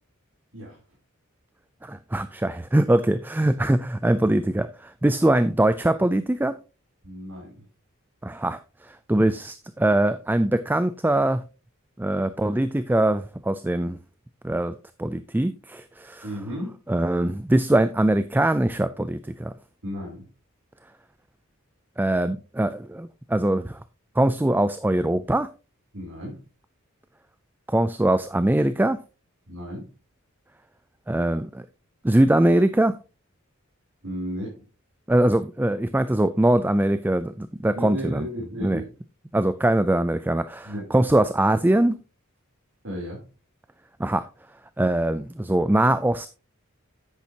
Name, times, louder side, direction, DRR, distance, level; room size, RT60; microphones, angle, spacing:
voice 1, 1.8-6.6 8.2-11.4 12.0-14.0 14.4-16.3 16.9-19.5 22.0-23.8 24.2-25.5 27.7-29.0 31.1-31.6 32.0-32.9 35.1-38.3 38.6-38.8 39.3-42.0 44.0-44.3 44.8-46.3, right 1 dB, 10° right, 0.4 m, -22 dB
voice 2, 7.0-7.6 16.2-16.8 19.8-20.3 25.9-26.4 29.5-29.9 34.0-34.6 37.8-38.9 40.6-41.0 42.8-43.3, equal, 65° right, 3.5 m, -34 dB
10.5 x 8.5 x 2.9 m
head